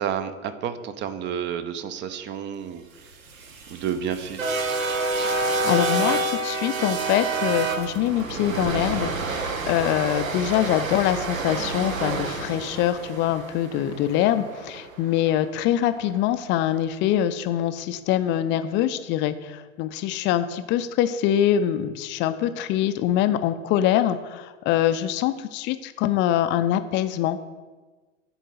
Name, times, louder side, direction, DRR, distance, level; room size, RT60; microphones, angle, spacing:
voice 1, 0.0-3.2 3.7-4.5, right 8 dB, 30° right, 11 dB, 0.5 m, -30 dB
sound 1, 3.1-15.3, right 3 dB, 90° right, 0.7 m, -28 dB
voice 2, 5.2-27.6, left 11 dB, 30° left, 11 dB, 0.4 m, -24 dB
9.9 x 3.9 x 3.9 m, 1.3 s
figure-of-eight pair, 85°, 39 cm